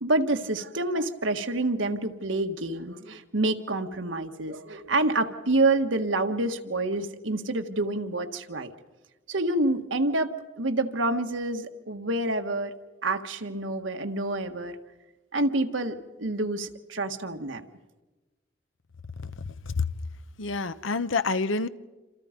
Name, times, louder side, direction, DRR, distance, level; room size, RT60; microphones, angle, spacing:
voice 1, 0.0-8.7 9.3-12.7 13.0-14.8 15.3-17.6, right 2 dB, 80° right, 1.6 m, -27 dB
voice 2, 20.4-21.7, left 4 dB, 90° left, 0.9 m, -27 dB
28.0 x 27.5 x 5.2 m
head